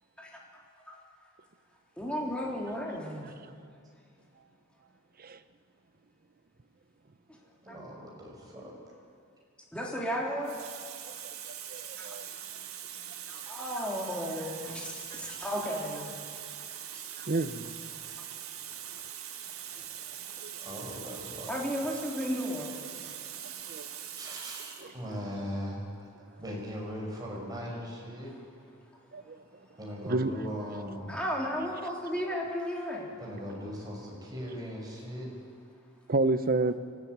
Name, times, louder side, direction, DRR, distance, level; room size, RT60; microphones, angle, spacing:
voice 1, 2.0-3.3 7.7-7.8 9.7-10.6 12.0-12.2 13.3-16.2 19.8-19.9 21.5-22.8 31.1-33.2, equal, 5° left, -3 dB, 3.5 m, -34 dB
voice 2, 7.6-8.8 20.6-21.6 24.2-26.1 26.4-28.3 29.8-31.1 33.2-35.3, equal, 20° right, -2 dB, 5.8 m, -39 dB
Water tap faucet, 9.6-9.9 10.4-24.9 25.8-26.0, right 10 dB, 85° right, 1.8 m, -42 dB
voice 3, 11.7-12.3 15.1-15.4 17.2-17.7 20.4-20.6 23.7-23.9 24.8-24.9 29.1-29.4 30.0-30.3 36.1-36.7, right 3 dB, 45° right, 11 dB, 0.8 m, -30 dB
24.5 x 14.5 x 9.5 m, 2.3 s
head